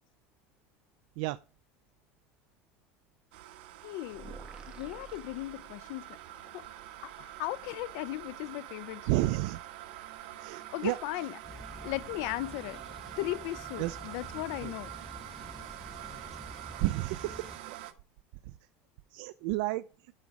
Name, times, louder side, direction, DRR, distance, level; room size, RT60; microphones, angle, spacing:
sound 1, 3.3-17.9, right 14 dB, 85° right, 1.3 m, -46 dB
voice 1, 3.8-4.4 4.7-6.7 7.0-9.0 10.7-11.4 11.8-12.8 13.2-14.9, left 18 dB, 65° left, 0.4 m, -37 dB
sound 2, 4.1-6.2, right 5 dB, 20° right, 1.3 m, -49 dB
voice 2, 9.1-9.6 10.4-11.0 13.8-14.0 14.6-14.7 16.8-17.8 18.4-18.5 19.1-19.8, right 18 dB, 65° right, 0.4 m, -31 dB
sound 3, 11.4-17.6, left 1 dB, 5° left, 2.2 m, -49 dB
12.0 x 5.2 x 4.6 m
cardioid pair, 165°, 5 cm